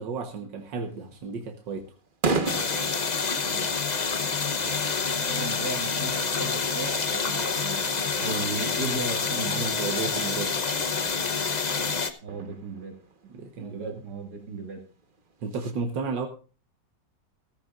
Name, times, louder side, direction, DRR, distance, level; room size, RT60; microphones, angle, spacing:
voice 1, 0.0-1.9 9.5-10.5 13.3-14.0 15.4-16.3, right 4 dB, 90° right, 5 dB, 1.9 m, -33 dB
sound 1, 0.6-15.7, right 3 dB, 30° right, 1.3 m, -39 dB
sound 2, 2.5-12.1, left 5 dB, 35° left, 0.8 m, -27 dB
voice 2, 5.1-7.8 8.2-9.6 12.2-12.9 13.6-14.8, right 3 dB, 65° right, 3 dB, 2.8 m, -36 dB
15.5 x 14.5 x 2.5 m, 0.36 s
omnidirectional pair, 1.9 m